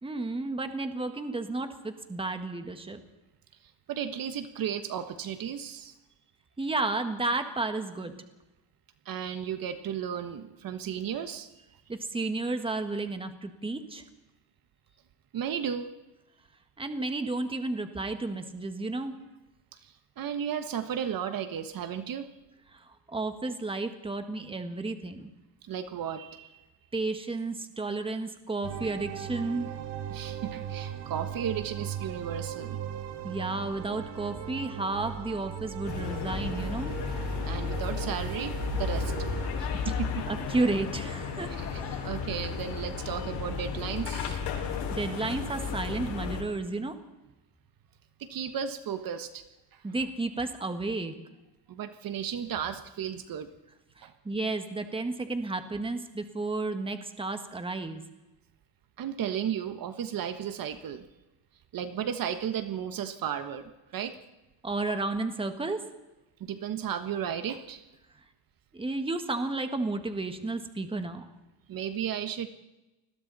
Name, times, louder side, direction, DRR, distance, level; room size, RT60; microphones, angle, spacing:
voice 1, 0.0-3.0 6.6-8.1 11.9-14.0 16.8-19.2 22.7-25.3 26.9-29.7 33.2-37.0 40.3-42.0 44.6-47.0 49.8-51.1 54.0-58.0 64.6-65.8 68.7-71.3, right 2 dB, 15° right, 7 dB, 1.8 m, -32 dB
voice 2, 3.6-5.9 9.0-11.7 15.3-15.9 19.7-22.3 25.7-26.6 30.1-32.8 37.4-39.1 39.6-40.3 41.5-44.4 48.2-49.4 49.7-49.8 51.7-53.5 54.0-54.1 59.0-61.0 61.7-64.2 66.4-67.8 71.7-72.5, right 8 dB, 55° right, 9 dB, 1.4 m, -34 dB
sound 1, 28.6-39.5, right 10 dB, 70° right, 2.1 m, -38 dB
sound 2, 35.8-46.4, left 6 dB, 75° left, 5.5 m, -33 dB
29.0 x 21.5 x 4.2 m, 1.0 s
cardioid pair, 140°, 42 cm